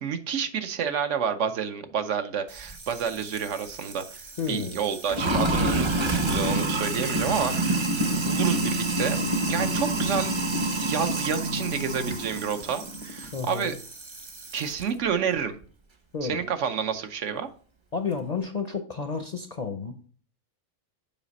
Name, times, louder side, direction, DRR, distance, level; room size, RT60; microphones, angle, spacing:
voice 1, 0.0-7.9 8.2-10.4 10.8-13.7 14.5-15.5 16.2-17.5, right 7 dB, 70° right, 8 dB, 1.1 m, -29 dB
Sink (filling or washing), 2.5-14.8, right 1 dB, 30° right, 0.6 m, -28 dB
voice 2, 4.4-4.8 13.3-13.7 16.1-16.4 17.9-20.1, left 5 dB, 45° left, 6 dB, 0.5 m, -31 dB
7.3 x 5.0 x 4.0 m, 0.43 s
omnidirectional pair, 1.3 m